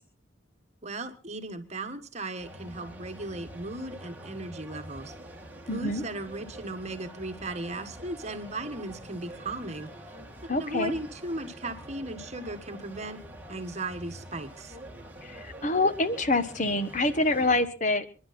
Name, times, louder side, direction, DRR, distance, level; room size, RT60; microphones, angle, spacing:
voice 1, 0.8-5.1 5.7-9.9 10.4-13.2 13.5-14.8, right 2 dB, 35° right, 7 dB, 1.6 m, -36 dB
sound 1, 2.4-17.7, right 1 dB, 10° right, 2.3 m, -46 dB
voice 2, 5.7-6.0 10.5-10.9 15.2-18.2, left 2 dB, 40° left, 12 dB, 1.2 m, -26 dB
27.0 x 11.0 x 4.3 m, 0.37 s
head